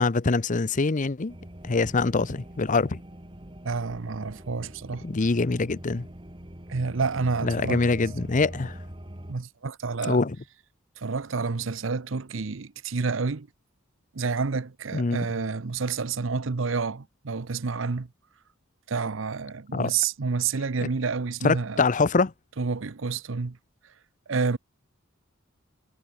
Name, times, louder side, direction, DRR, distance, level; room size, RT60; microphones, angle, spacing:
voice 1, 0.0-1.3 1.6-3.0 5.0-6.1 7.4-8.8 10.1-10.4 14.9-15.2 19.7-19.9 21.4-22.3, left 3 dB, 40° left, 0.7 m, -24 dB
sound 1, 1.3-9.3, right 1 dB, 25° right, 2.6 m, -43 dB
voice 2, 3.6-5.1 6.7-7.9 9.3-10.2 11.0-13.5 14.1-18.1 18.9-21.8 22.6-23.6 24.3-24.6, right 4 dB, 70° right, 0.8 m, -29 dB
head